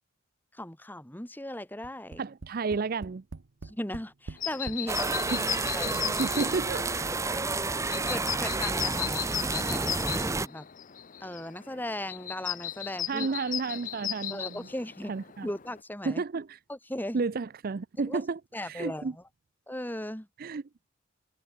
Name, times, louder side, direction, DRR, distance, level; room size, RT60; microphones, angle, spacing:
voice 1, 0.5-2.2 3.6-5.1 5.8-6.1 8.1-10.7 11.2-13.3 14.3-15.1 15.4-16.2 16.7-17.2 18.1-18.2 18.5-19.2 19.7-20.3, left 1 dB, 10° left, 2.0 m, -37 dB
Tap, 1.8-4.9 5.7-5.8 6.1-6.2, right 3 dB, 70° right, 0.8 m, -44 dB
voice 2, 2.2-3.2 5.3-5.5 5.8-7.4 13.1-14.7 15.1-15.5 16.1-16.6 17.1-19.1 20.4-20.6, right 4 dB, 45° right, 0.5 m, -32 dB
sound 1, 4.4-15.8, left 11 dB, 40° left, 0.7 m, -37 dB
sound 2, 4.9-10.5, right 3 dB, 15° right, 0.7 m, -30 dB
head